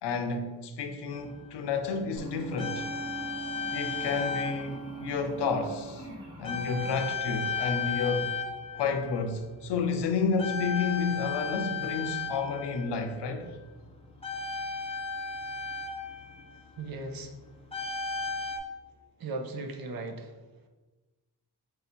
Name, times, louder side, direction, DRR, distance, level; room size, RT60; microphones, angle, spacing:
voice 1, 0.0-2.9 3.7-6.1 6.4-8.3 8.7-13.5, left 5 dB, 80° left, 0.6 m, -31 dB
sound 1, 1.1-1.2 2.2-4.7 5.0-5.3 6.4-9.2 9.5-9.9 10.4-13.0 14.2-16.6 17.7-18.6, left 5 dB, 15° left, 0.5 m, -34 dB
sound 2, 2.2-8.5, right 4 dB, 10° right, 0.9 m, -42 dB
voice 2, 16.8-17.3 19.2-20.3, right 3 dB, 60° right, 0.6 m, -37 dB
3.8 x 2.8 x 4.2 m
wide cardioid pair, 135°, 40 cm